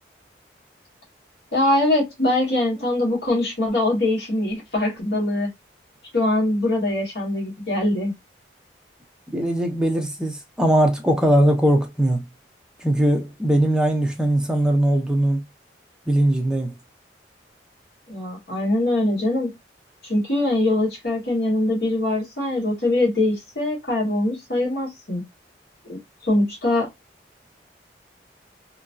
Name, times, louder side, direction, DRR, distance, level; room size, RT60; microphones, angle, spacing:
voice 1, 1.5-5.5 6.1-8.1 18.1-19.5 20.0-25.2 25.9-26.9, left 1 dB, 60° left, 1.5 m, -22 dB
voice 2, 9.3-12.2 12.8-15.4 16.1-16.7, right 1 dB, 5° right, 0.5 m, -20 dB
3.0 x 2.6 x 2.3 m
head